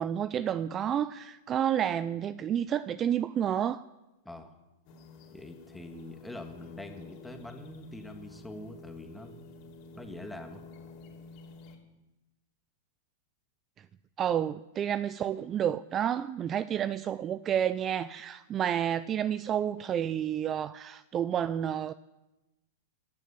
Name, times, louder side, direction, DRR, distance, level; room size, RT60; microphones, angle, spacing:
voice 1, 0.0-3.8 14.2-21.9, right 9 dB, 30° right, 16 dB, 0.4 m, -30 dB
voice 2, 4.2-4.6 5.3-9.4 9.9-10.6, left 1 dB, 5° left, 5 dB, 1.6 m, -44 dB
sound 1, 4.9-11.8, left 3 dB, 50° left, 2.8 m, -50 dB
14.5 x 7.3 x 8.3 m, 1.0 s
hypercardioid pair, 120°, 0 cm